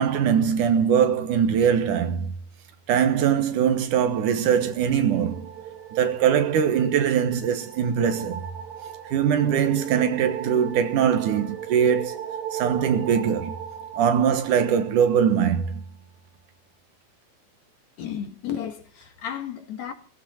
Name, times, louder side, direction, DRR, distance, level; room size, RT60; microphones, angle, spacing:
voice 1, 0.0-2.3 2.9-5.5 5.9-8.5 9.1-13.6 14.0-15.8, right 8 dB, 85° right, 2.9 m, -22 dB
sound 1, 4.3-15.4, right 9 dB, 65° right, 4.4 m, -38 dB
voice 2, 18.0-19.9, left 9 dB, 65° left, 3.0 m, -33 dB
18.0 x 15.5 x 4.4 m
omnidirectional pair, 3.5 m